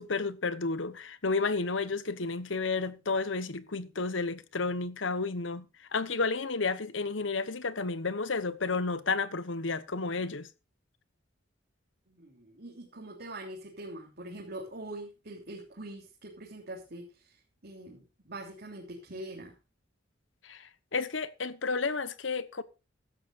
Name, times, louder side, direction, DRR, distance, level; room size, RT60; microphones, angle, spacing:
voice 1, 0.0-5.6 5.9-10.5 20.4-22.6, left 4 dB, 80° left, 1.1 m, -31 dB
voice 2, 12.1-17.1 17.6-19.5, right 1 dB, 55° right, 3.2 m, -43 dB
16.0 x 13.0 x 2.6 m
head